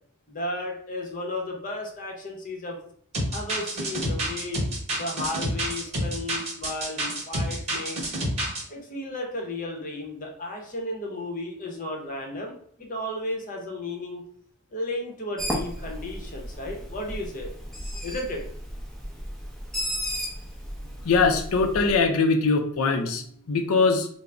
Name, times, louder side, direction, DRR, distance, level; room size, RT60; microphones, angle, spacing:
voice 1, 0.3-2.8 3.3-4.6 4.9-8.1 8.7-14.2 14.7-17.5 18.0-18.4, left 1 dB, 40° left, 1 dB, 0.8 m, -34 dB
sound 1, 3.1-8.6, right 1 dB, 30° right, 1.1 m, -28 dB
Bird, 15.4-22.0, equal, ahead, 0.6 m, -34 dB
voice 2, 21.0-24.1, left 4 dB, 85° left, 6 dB, 0.5 m, -22 dB
3.7 x 2.0 x 3.3 m, 0.62 s
head